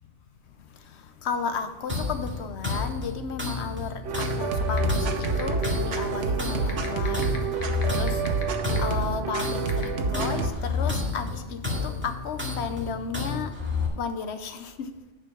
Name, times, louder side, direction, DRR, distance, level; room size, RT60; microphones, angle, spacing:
voice 1, 0.7-7.3 7.9-8.2 8.8-13.5 14.0-14.9, left 5 dB, 70° left, 9 dB, 1.0 m, -34 dB
sound 1, 1.9-13.9, left 4 dB, 10° right, 2.0 m, -31 dB
sound 2, 4.0-10.5, right 5 dB, 80° right, 1.2 m, -28 dB
sound 3, 4.8-4.9 5.2-5.6 5.9-6.0 6.7-8.4 8.8-8.9 9.7-9.8, left 5 dB, 85° left, 1.6 m, -35 dB
10.0 x 5.0 x 6.0 m, 1.1 s
omnidirectional pair, 1.2 m